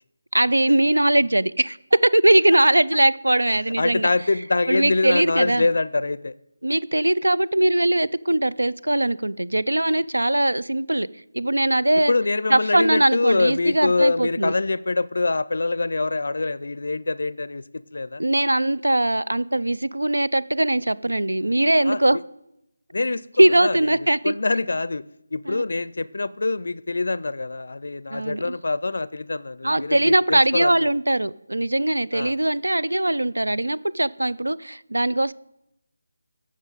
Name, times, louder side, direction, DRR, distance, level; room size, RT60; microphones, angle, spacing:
voice 1, 0.3-4.1 4.7-5.7 6.6-11.1 11.3-12.1 12.5-14.5 18.2-22.2 23.4-24.3 25.5-25.6 28.1-28.6 29.6-35.3, right 1 dB, 80° right, 0.4 m, -20 dB
voice 2, 3.8-6.3 12.1-18.2 21.9-22.0 22.9-23.8 24.2-25.0 25.3-30.7 32.1-32.4, left 3 dB, 60° left, 0.4 m, -24 dB
16.0 x 6.2 x 4.0 m
figure-of-eight pair, 160°, 0 cm